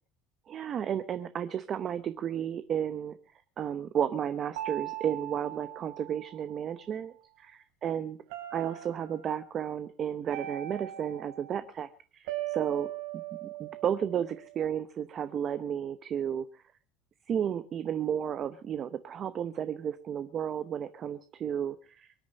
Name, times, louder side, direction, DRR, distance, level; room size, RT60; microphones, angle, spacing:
voice 1, 0.5-3.2 3.6-7.1 7.8-8.2 8.5-12.9 13.4-16.5 17.3-22.1, right 9 dB, 30° right, 12 dB, 0.8 m, -33 dB
sound 1, 4.5-6.9 8.3-9.3 10.3-11.6 12.3-14.6, right 15 dB, 80° right, 5.1 m, -40 dB
24.0 x 9.7 x 5.4 m, 0.40 s
cardioid pair, 160°, 0 cm